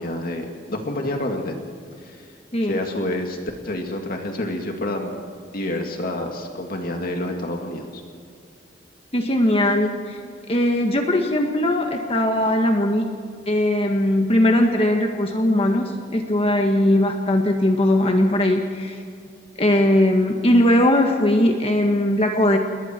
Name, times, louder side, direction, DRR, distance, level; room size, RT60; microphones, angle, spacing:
voice 1, 0.0-1.6 2.0-2.2 2.6-3.4 3.6-5.2 5.5-8.0, left 1 dB, 50° left, 2 dB, 2.3 m, -28 dB
voice 2, 9.1-10.2 10.5-13.1 13.5-19.0 19.6-22.6, left 1 dB, 30° left, 3 dB, 1.7 m, -19 dB
28.0 x 21.5 x 4.6 m, 2.3 s
head